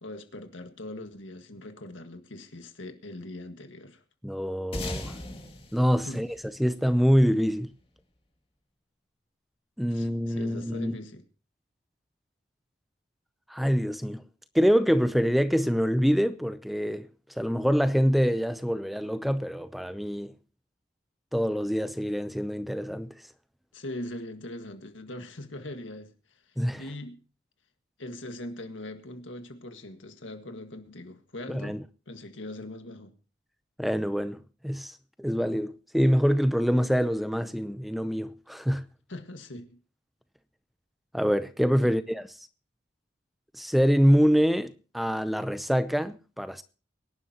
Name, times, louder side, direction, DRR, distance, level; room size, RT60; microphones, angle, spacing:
voice 1, 0.0-4.0 6.0-6.2 9.9-11.2 23.7-27.2 28.0-33.1 39.1-39.8 41.8-41.9, left 1 dB, 85° left, 1.7 m, -41 dB
voice 2, 4.2-5.1 5.7-6.3 6.6-7.7 9.8-11.0 13.5-14.2 14.5-17.1 17.4-20.3 21.3-23.1 26.6-26.8 31.5-31.8 33.8-38.8 41.1-42.3 43.5-46.6, equal, ahead, 0.6 m, -25 dB
sound 1, 4.7-7.5, left 1 dB, 30° left, 2.4 m, -39 dB
24.0 x 11.0 x 2.9 m
head